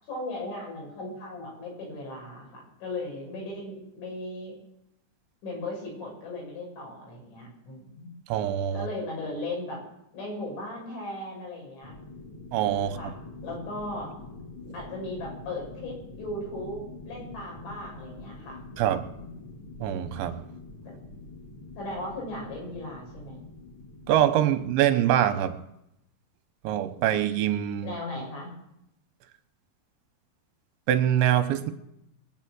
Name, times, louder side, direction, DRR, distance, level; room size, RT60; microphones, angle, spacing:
voice 1, 0.1-4.6 5.4-8.1 8.7-9.8 10.1-11.9 13.0-13.1 13.4-14.1 14.7-16.8 17.1-19.3 21.8-23.4 27.8-28.5, left 2 dB, 85° left, 9.0 m, -37 dB
voice 2, 8.3-8.9 12.5-13.0 18.8-19.0 19.8-20.4 24.1-25.6 26.6-28.0 30.9-31.7, right 11 dB, 85° right, 3.1 m, -24 dB
sound 1, 11.8-25.1, left 3 dB, 55° left, 1.4 m, -45 dB
22.5 x 8.9 x 6.2 m
omnidirectional pair, 5.2 m